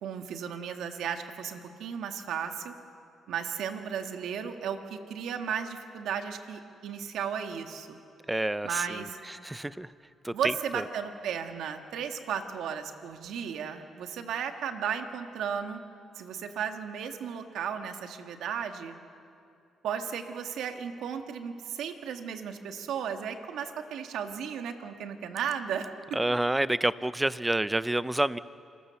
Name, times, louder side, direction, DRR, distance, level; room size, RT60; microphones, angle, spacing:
voice 1, 0.0-2.7 3.3-8.0 8.6-9.2 10.3-15.8 16.2-18.9 19.8-26.2, right 7 dB, 80° right, 6 dB, 1.7 m, -35 dB
voice 2, 8.3-9.0 9.3-9.9 10.2-10.8 26.1-28.4, right 1 dB, 10° right, 16 dB, 0.6 m, -28 dB
28.0 x 20.5 x 7.0 m, 2.6 s
cardioid pair, 90°, 0 cm